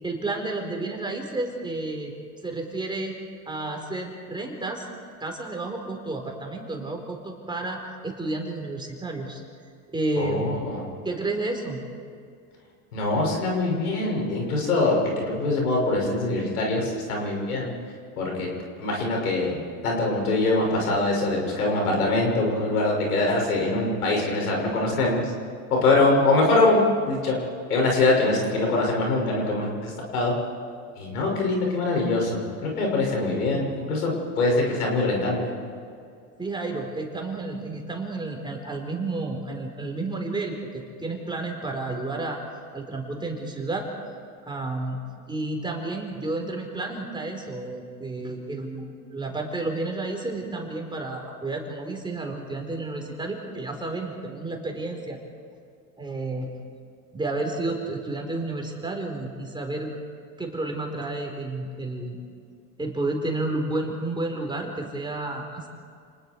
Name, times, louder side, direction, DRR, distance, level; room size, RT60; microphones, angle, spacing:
voice 1, 0.0-2.1 2.4-3.2 3.5-4.9 5.2-9.4 9.9-10.5 11.0-11.8 36.4-42.4 42.7-43.9 44.5-45.0 45.3-55.2 56.0-56.5 57.1-59.9 60.4-62.2 62.8-65.7, right 2 dB, 10° right, 2 dB, 4.3 m, -31 dB
voice 2, 10.2-10.8 12.9-15.0 15.2-17.7 18.2-18.5 18.8-25.3 25.7-27.4 27.7-30.3 31.0-35.5, left 2 dB, 90° left, 0 dB, 6.4 m, -23 dB
29.5 x 20.0 x 4.7 m, 2.3 s
hypercardioid pair, 95°, 44 cm